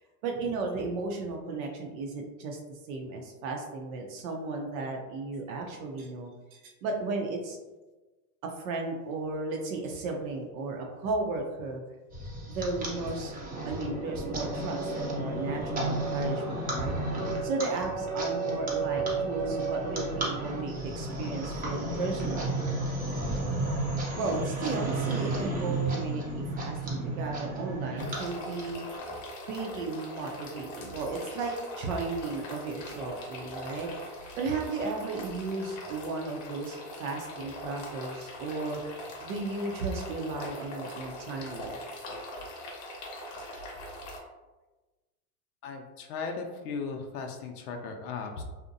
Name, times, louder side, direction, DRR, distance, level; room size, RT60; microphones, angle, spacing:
voice 1, 0.2-7.6 8.4-11.8 12.5-13.3 13.6-16.9 17.4-22.6 24.2-28.8 29.5-33.9 34.4-38.8 39.2-41.7, right 3 dB, 65° right, 1 dB, 0.6 m, -34 dB
sound 1, 12.1-29.0, right 2 dB, 20° right, 0.6 m, -32 dB
sound 2, 28.0-44.2, left 1 dB, 40° left, 0.7 m, -42 dB
voice 2, 45.6-48.4, left 4 dB, 75° left, 3 dB, 0.6 m, -37 dB
2.7 x 2.1 x 2.5 m, 1.2 s
supercardioid pair, 120°, 45 cm